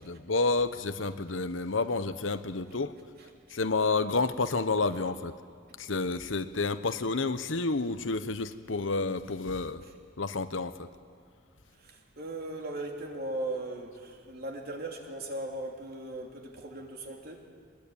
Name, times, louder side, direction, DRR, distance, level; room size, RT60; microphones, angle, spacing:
voice 1, 0.0-2.9 3.5-5.3 5.8-9.8 10.2-10.7, left 3 dB, 80° left, 11 dB, 1.0 m, -30 dB
voice 2, 11.8-17.5, right 2 dB, 55° right, 1 dB, 3.1 m, -38 dB
23.0 x 21.0 x 8.8 m, 2.1 s
head